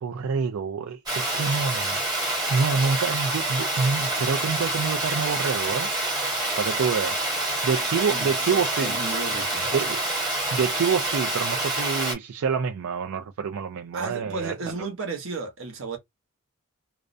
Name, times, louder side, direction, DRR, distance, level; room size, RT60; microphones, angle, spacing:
voice 1, 0.0-2.0 2.5-5.9 6.6-7.2 7.6-9.0 9.7-10.0 10.5-14.9, right 5 dB, 90° right, 0.4 m, -27 dB
Water, 1.1-12.1, right 2 dB, 20° right, 1.0 m, -27 dB
voice 2, 8.1-9.7 13.9-16.0, right 3 dB, 70° right, 0.9 m, -34 dB
2.4 x 2.1 x 2.5 m
head